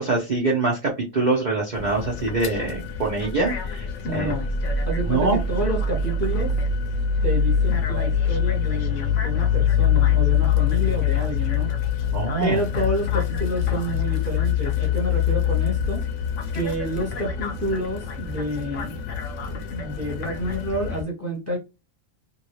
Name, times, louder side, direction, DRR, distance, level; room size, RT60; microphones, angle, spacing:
voice 1, 0.0-4.3 5.1-5.4 12.1-12.6, right 3 dB, 45° right, -4 dB, 0.7 m, -24 dB
sound 1, 1.7-21.0, left 7 dB, 70° left, 0.9 m, -24 dB
voice 2, 4.0-4.5 4.9-6.5 7.2-11.7 12.4-16.0 16.5-19.0 19.7-21.6, equal, 15° left, -2 dB, 1.0 m, -29 dB
2.8 x 2.7 x 3.0 m, 0.26 s
omnidirectional pair, 1.4 m